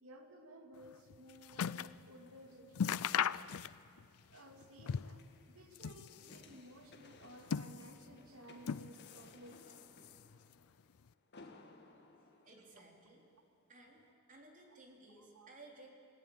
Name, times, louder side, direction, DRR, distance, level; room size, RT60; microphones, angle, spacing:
voice 1, 0.0-3.2 4.3-9.9 15.2-15.5, right 1 dB, 75° right, 4 dB, 2.6 m, -56 dB
sound 1, 0.8-2.0 2.4-2.5 2.7-4.0 4.3-5.3 5.6-6.5 7.1-8.1 8.6-9.3 9.6-10.4 11.1-11.2, left 7 dB, 75° left, 0.5 m, -38 dB
sound 2, 2.1-13.4 13.9-14.0, left 3 dB, 50° left, 1.9 m, -62 dB
voice 2, 12.5-13.2 13.7-14.0 14.3-15.9, right 2 dB, 35° right, 0 dB, 3.8 m, -57 dB
28.5 x 17.5 x 8.9 m, 2.6 s
head